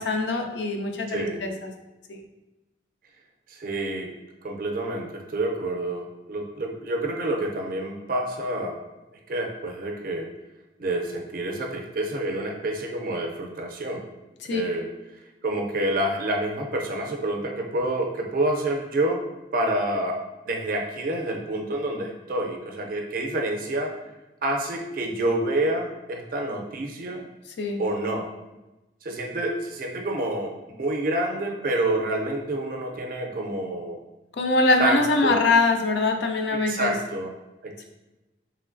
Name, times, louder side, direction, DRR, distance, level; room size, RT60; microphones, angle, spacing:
voice 1, 0.0-1.7 2.1-2.2 14.4-14.6 27.6-27.8 34.4-36.9, left 3 dB, 65° left, 4 dB, 0.4 m, -23 dB
voice 2, 1.1-1.4 3.5-4.1 4.4-8.8 9.3-10.3 10.8-14.0 14.5-14.9 15.4-19.2 19.5-20.2 20.5-23.9 24.4-27.2 27.8-28.3 29.0-30.5 30.8-34.0 34.8-35.4 36.5-37.3 37.6-37.8, right 1 dB, 50° right, 2 dB, 0.5 m, -28 dB
3.1 x 3.0 x 2.5 m, 1.0 s
head